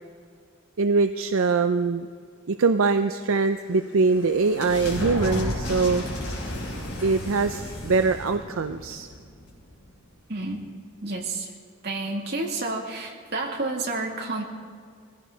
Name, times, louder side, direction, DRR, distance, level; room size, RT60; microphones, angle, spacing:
voice 1, 0.8-2.1 2.5-6.0 7.0-9.1, right 4 dB, 70° right, 9 dB, 0.5 m, -23 dB
sound 1, 3.5-9.9, left 1 dB, 60° left, 5.5 m, -33 dB
voice 2, 10.3-10.6 11.0-11.5 11.8-14.4, right 2 dB, 50° right, 0 dB, 2.4 m, -30 dB
22.5 x 16.0 x 4.0 m, 2.1 s
head